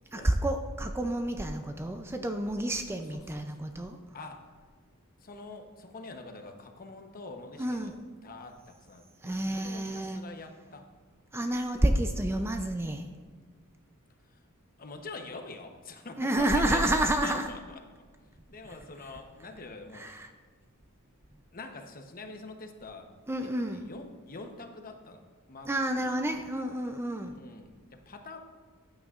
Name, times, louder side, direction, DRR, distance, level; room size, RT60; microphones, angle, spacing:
voice 1, 0.1-4.0 7.6-7.9 9.2-10.2 11.3-13.0 16.2-17.4 19.9-20.3 23.3-23.8 25.7-27.4, right 1 dB, 10° right, 5 dB, 0.4 m, -29 dB
voice 2, 2.9-3.6 4.1-4.5 5.2-7.9 8.2-10.8 14.3-14.4 14.8-17.8 18.5-20.1 21.5-23.1 23.4-25.2 25.5-26.0 27.3-28.4, left 3 dB, 40° left, 4 dB, 0.9 m, -45 dB
14.5 x 9.0 x 2.5 m, 1.5 s
head